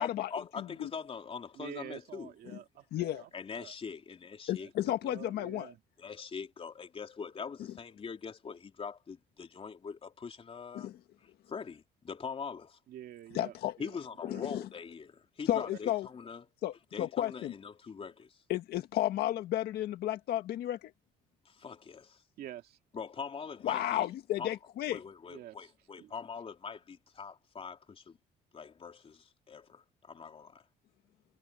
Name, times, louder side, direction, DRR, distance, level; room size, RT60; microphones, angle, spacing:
voice 1, 0.0-2.3 3.3-4.7 6.0-10.9 11.2-12.8 13.8-16.5 16.9-18.4 21.5-22.2 22.9-24.1 24.4-24.6 24.9-28.2 28.5-30.6, left 6 dB, 35° left, 3.6 m, -43 dB
voice 2, 0.6-0.9 2.9-3.2 4.5-5.7 10.7-10.9 13.3-13.7 14.2-14.6 15.5-16.1 16.6-17.5 18.5-20.9 23.6-25.0, left 13 dB, 70° left, 1.6 m, -33 dB
voice 3, 1.5-3.7 4.6-5.8 12.9-13.9 14.3-14.4 15.5-15.6 22.4-22.8 25.3-25.7 26.0-26.1, right 12 dB, 70° right, 2.3 m, -48 dB
cardioid pair, 110°, 17 cm